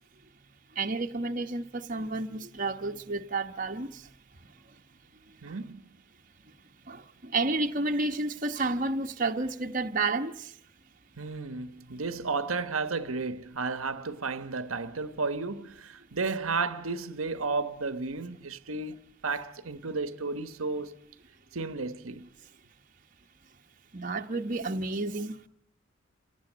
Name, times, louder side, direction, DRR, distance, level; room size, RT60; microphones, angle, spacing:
voice 1, 0.7-4.1 4.5-4.7 5.5-5.6 6.8-10.6 23.9-25.5, right 3 dB, 40° right, 1.2 m, -31 dB
voice 2, 5.4-5.8 11.2-19.0 19.2-21.0 21.5-22.3, right 4 dB, 90° right, 1.2 m, -33 dB
28.0 x 18.5 x 9.1 m
head